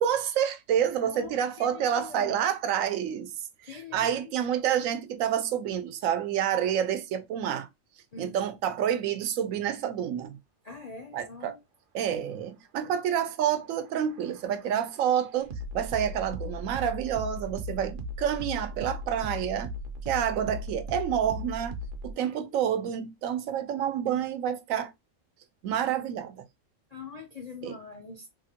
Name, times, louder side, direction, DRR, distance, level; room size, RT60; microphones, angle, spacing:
voice 1, 0.0-3.3 3.6-7.7 8.2-10.4 11.1-11.6 11.9-19.7 20.1-21.8 22.0-24.9 25.6-26.4 27.6-27.8, right 9 dB, 90° right, 1.0 m, -28 dB
voice 2, 1.0-2.3 3.7-4.4 8.1-8.4 10.6-11.6 22.1-22.4 26.9-28.3, left 5 dB, 60° left, 0.4 m, -44 dB
sound 1, 13.4-22.1, equal, 55° right, 0.6 m, -38 dB
3.5 x 2.1 x 2.7 m
omnidirectional pair, 1.3 m